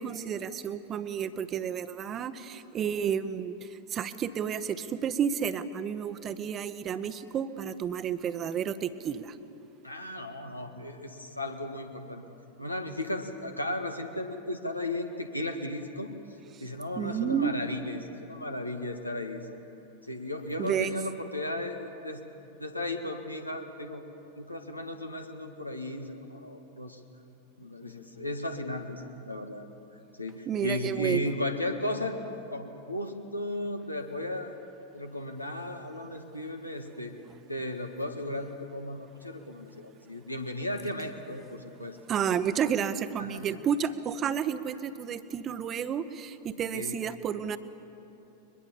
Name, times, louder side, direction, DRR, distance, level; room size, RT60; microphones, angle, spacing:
voice 1, 0.0-9.4 16.5-16.6 17.0-17.5 17.8-18.0 20.6-20.9 30.5-31.3 42.1-47.6, right 8 dB, 30° right, 12 dB, 1.0 m, -31 dB
voice 2, 9.8-12.2 12.6-16.1 16.6-19.6 20.0-22.2 22.6-24.0 24.4-27.0 27.6-29.7 30.2-32.2 32.5-37.1 37.5-42.0 43.2-43.5 46.7-47.0, left 1 dB, 85° left, 5 dB, 1.7 m, -35 dB
22.5 x 22.0 x 7.2 m, 2.9 s
figure-of-eight pair, 90°, 0 cm